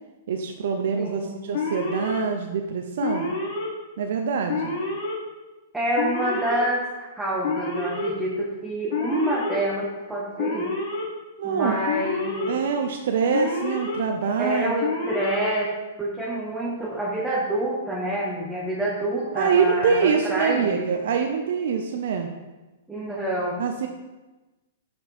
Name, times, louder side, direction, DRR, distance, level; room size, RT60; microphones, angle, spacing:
voice 1, 0.3-3.3 4.0-4.7 11.4-11.8 12.5-14.7 19.3-22.3 23.6-23.9, right 6 dB, 70° right, 4 dB, 0.6 m, -25 dB
voice 2, 1.0-1.4 5.7-6.9 7.1-10.7 11.4-12.6 14.4-20.9 22.9-23.6, right 1 dB, 5° right, -6 dB, 1.1 m, -27 dB
Alarm, 1.5-2.2 3.0-3.7 4.5-5.1 5.9-6.6 7.4-8.1 8.9-9.6 10.4-11.0 11.8-12.5 13.3-14.0 14.8-15.5, left 3 dB, 60° left, 2.2 m, -28 dB
5.5 x 5.3 x 4.3 m, 1.1 s
hypercardioid pair, 130°, 0 cm